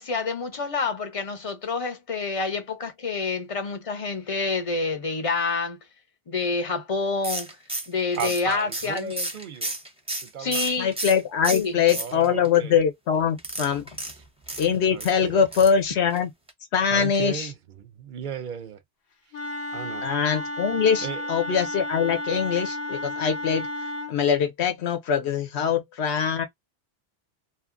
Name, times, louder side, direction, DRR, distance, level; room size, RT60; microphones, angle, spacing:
voice 1, 0.0-5.8 6.3-7.6 7.9-9.3 10.4-10.9 11.5-11.8, left 4 dB, 35° left, 0.7 m, -28 dB
sound 1, 7.2-11.2 11.4-12.5 13.4-15.1 15.5-15.8 16.1-16.2 16.5-16.6, right 2 dB, 5° right, 0.6 m, -32 dB
voice 2, 8.2-9.8 10.2-10.8 11.9-12.8 14.9-15.4 16.9-18.8 19.7-20.1 21.0-21.2, right 8 dB, 60° right, 0.6 m, -35 dB
voice 3, 10.8-13.9 14.6-16.3 16.7-17.5 20.0-23.7 24.1-26.5, left 7 dB, 85° left, 1.1 m, -23 dB
Wind instrument woodwind instrument, 19.3-24.2, left 1 dB, 65° left, 0.9 m, -32 dB
2.7 x 2.5 x 2.4 m
omnidirectional pair, 1.1 m